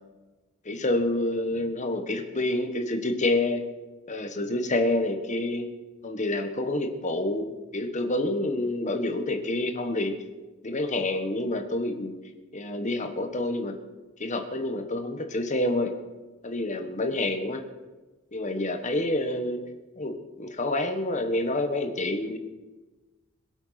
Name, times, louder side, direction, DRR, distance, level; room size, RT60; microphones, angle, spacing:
voice 1, 0.6-3.6 4.1-5.6 6.0-10.1 10.6-12.1 12.5-13.7 14.2-15.9 16.4-17.6 18.3-19.6 20.0-22.4, left 1 dB, 35° left, 6 dB, 1.5 m, -28 dB
22.0 x 8.0 x 5.9 m, 1.2 s
head